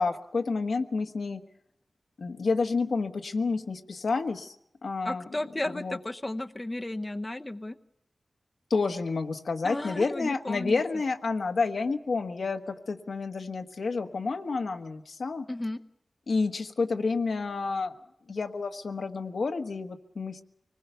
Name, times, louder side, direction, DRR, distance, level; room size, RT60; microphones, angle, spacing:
voice 1, 0.0-1.4 2.2-4.5 4.8-5.2 5.7-6.0 8.7-15.4 16.3-17.9 18.3-20.4, left 4 dB, 85° left, 5 dB, 1.4 m, -29 dB
voice 2, 5.0-7.8 9.6-10.8 15.5-15.8, left 1 dB, 25° left, 8 dB, 0.8 m, -34 dB
25.0 x 20.0 x 7.0 m, 0.81 s
wide cardioid pair, 65°, 0 cm